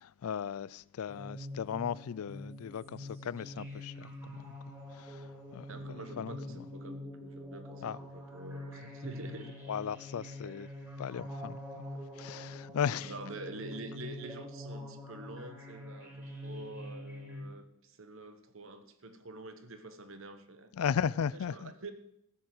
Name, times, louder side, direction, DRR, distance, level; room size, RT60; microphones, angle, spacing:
voice 1, 0.0-6.6 7.8-8.0 9.7-10.7 11.0-11.8 12.2-13.1 20.7-21.7, left 7 dB, 80° left, 0.4 m, -37 dB
sound 1, 1.1-17.4, left 1 dB, 10° right, 2.6 m, -45 dB
voice 2, 5.7-9.6 11.9-12.0 13.0-21.9, right 2 dB, 65° right, 1.2 m, -47 dB
13.5 x 6.9 x 7.9 m
head